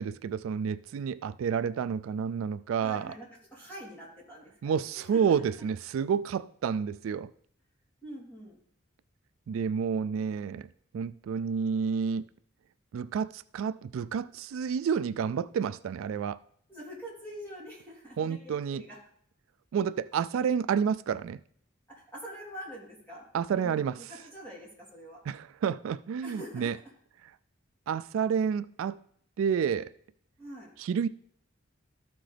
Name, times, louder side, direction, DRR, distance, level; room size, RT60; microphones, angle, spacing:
voice 1, 0.0-3.1 4.6-7.3 9.5-10.7 10.9-12.2 12.9-16.4 18.2-18.8 19.7-21.4 23.3-24.0 25.3-26.8 27.9-29.0 29.4-29.9 30.8-31.1, right 7 dB, 85° right, 0.3 m, -30 dB
voice 2, 2.8-4.8 5.1-5.4 8.0-8.6 16.7-19.0 21.9-23.2 23.5-25.2 26.2-26.7 30.4-30.7, equal, 10° left, 3.3 m, -45 dB
13.5 x 6.0 x 3.4 m
head